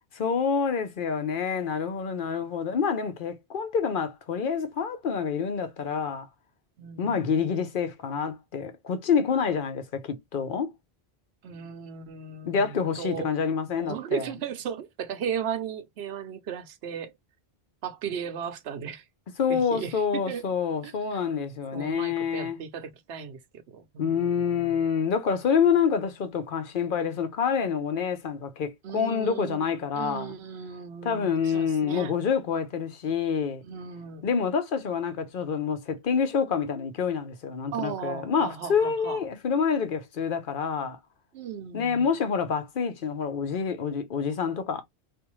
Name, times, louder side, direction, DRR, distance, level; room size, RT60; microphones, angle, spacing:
voice 1, 0.2-6.3 7.0-10.7 12.4-14.2 19.4-22.6 24.0-30.3 31.0-33.6 34.2-41.0 41.7-44.8, left 6 dB, 60° left, 0.8 m, -27 dB
voice 2, 6.8-7.6 11.4-13.3 13.8-17.1 17.8-19.1 19.5-20.4 20.8-21.2 21.7-24.7 28.8-29.7 29.9-32.1 33.6-34.2 37.7-39.2 41.3-42.1, right 7 dB, 85° right, 0.9 m, -36 dB
3.5 x 2.6 x 3.0 m
omnidirectional pair, 1.0 m